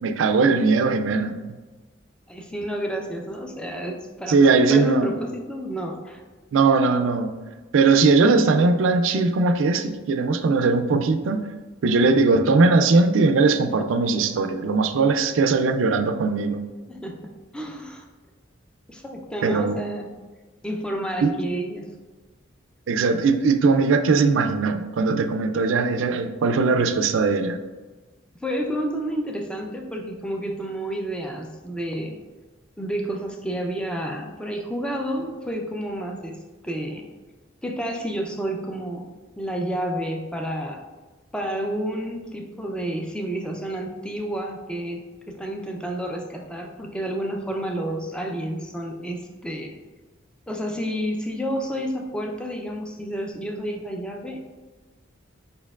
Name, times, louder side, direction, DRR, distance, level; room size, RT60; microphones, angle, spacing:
voice 1, 0.0-1.4 4.3-5.1 6.5-7.3 7.7-11.4 11.8-16.6 19.4-19.8 21.2-21.3 22.9-27.6, right 4 dB, 75° right, 8 dB, 0.4 m, -20 dB
voice 2, 2.3-6.2 16.9-17.2 17.5-18.1 18.9-20.1 20.6-21.9 28.4-32.2 32.8-37.0 37.6-39.1 39.4-40.8 41.3-49.7 50.5-54.4, equal, 5° left, 1 dB, 0.4 m, -30 dB
5.1 x 4.4 x 2.3 m, 1.3 s
head